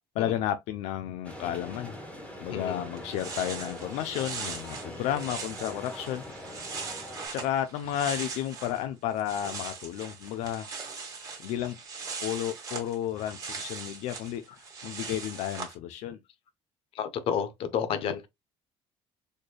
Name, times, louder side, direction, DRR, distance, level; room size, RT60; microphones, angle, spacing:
voice 1, 0.2-2.0 2.4-6.2 7.3-10.7 11.4-11.8 12.2-16.2, left 11 dB, 80° left, 0.5 m, -32 dB
sound 1, 1.2-7.3, equal, 10° left, 1.5 m, -42 dB
voice 2, 2.5-2.8 16.9-18.3, left 8 dB, 55° left, 0.8 m, -30 dB
sound 2, 3.0-8.8 9.1-15.7, right 5 dB, 30° right, 1.5 m, -40 dB
4.3 x 3.3 x 2.2 m
cardioid pair, 160°, 11 cm